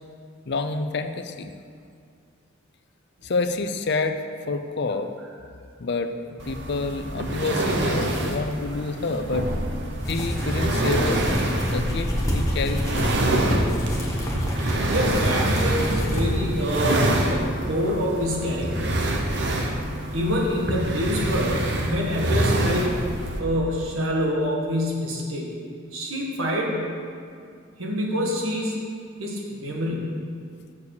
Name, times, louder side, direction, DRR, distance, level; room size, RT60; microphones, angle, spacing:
voice 1, 0.5-1.5 3.2-4.2 4.5-5.1 5.8-6.1 6.4-9.5 10.1-13.6, left 3 dB, 55° left, 8 dB, 0.5 m, -28 dB
sound 1, 6.4-23.4, right 1 dB, 60° right, 1.0 m, -26 dB
sound 2, 10.0-17.0, equal, 15° left, 1.3 m, -28 dB
voice 2, 14.9-18.9 20.1-23.0 23.4-25.5 25.9-26.9 27.8-28.7 29.2-30.2, equal, 80° right, -2 dB, 1.8 m, -26 dB
7.1 x 6.8 x 6.7 m, 2.2 s
head